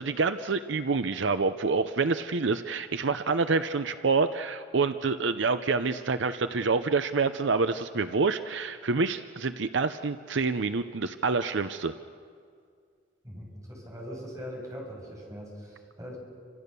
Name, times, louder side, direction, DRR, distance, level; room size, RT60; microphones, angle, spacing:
voice 1, 0.0-11.9, right 4 dB, 70° right, 10 dB, 0.7 m, -27 dB
voice 2, 13.2-16.2, equal, 15° right, -2 dB, 7.2 m, -41 dB
28.5 x 26.0 x 6.9 m, 2.2 s
head